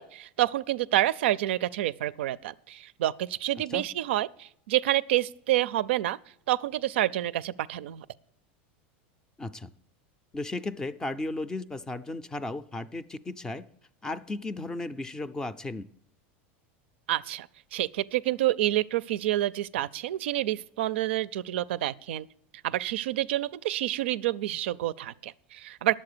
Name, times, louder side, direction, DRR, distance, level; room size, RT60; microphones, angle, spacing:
voice 1, 0.0-6.2 6.5-8.1 17.1-22.3 22.6-26.0, right 14 dB, 85° right, 0.4 m, -28 dB
voice 2, 9.4-9.7 10.3-13.7 14.0-15.9, left 2 dB, 10° left, 0.4 m, -35 dB
10.5 x 7.6 x 6.7 m
supercardioid pair, 155°, 6 cm